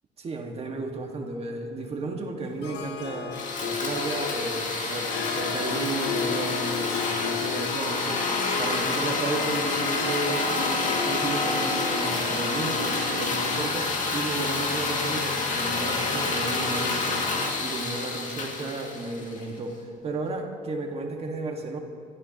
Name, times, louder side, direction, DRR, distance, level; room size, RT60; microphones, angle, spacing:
voice 1, 0.2-17.2 17.6-21.8, right 2 dB, 35° right, 1 dB, 1.8 m, -33 dB
Harp, 2.6-14.8, left 6 dB, 85° left, 1.1 m, -35 dB
sound 1, 3.3-19.5, left 3 dB, 50° left, 2.2 m, -28 dB
24.0 x 13.5 x 3.0 m, 2.3 s
cardioid pair, 110°, 17 cm